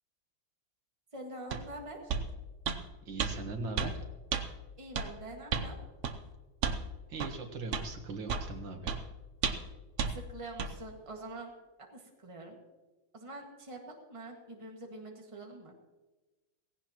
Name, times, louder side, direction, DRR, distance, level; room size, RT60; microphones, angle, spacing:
voice 1, 1.1-2.1 4.8-5.8 10.1-11.5 11.8-12.6 13.1-15.7, right 2 dB, 15° right, 1 dB, 1.8 m, -45 dB
sound 1, 1.5-1.6 2.1-2.3 2.7-2.8 3.2-3.3 3.8-3.9 4.3-4.4 5.0-5.1 5.5-5.7 6.0-6.2 6.6-6.8 7.2-7.3 7.7-7.9 8.3-8.5 8.9-9.0 9.4-9.7 10.0-10.1 10.6-10.7, right 6 dB, 55° right, 0.9 m, -32 dB
voice 2, 3.1-4.0 7.1-9.0, right 3 dB, 85° right, 4 dB, 2.2 m, -40 dB
17.0 x 17.0 x 3.0 m, 1.2 s
omnidirectional pair, 2.0 m